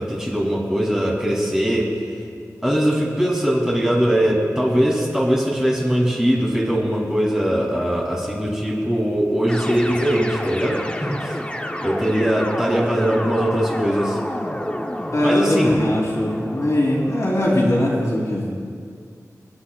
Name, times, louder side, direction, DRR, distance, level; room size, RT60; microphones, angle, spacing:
voice 1, 0.0-1.9 2.6-11.4 11.8-14.2 15.2-15.8, equal, 10° right, -4 dB, 2.9 m, -21 dB
sound 1, 9.5-17.6, left 1 dB, 20° left, 0.9 m, -30 dB
voice 2, 15.1-18.5, left 1 dB, 55° left, -5 dB, 3.1 m, -20 dB
28.5 x 9.7 x 2.4 m, 2.2 s
wide cardioid pair, 75°, 6 cm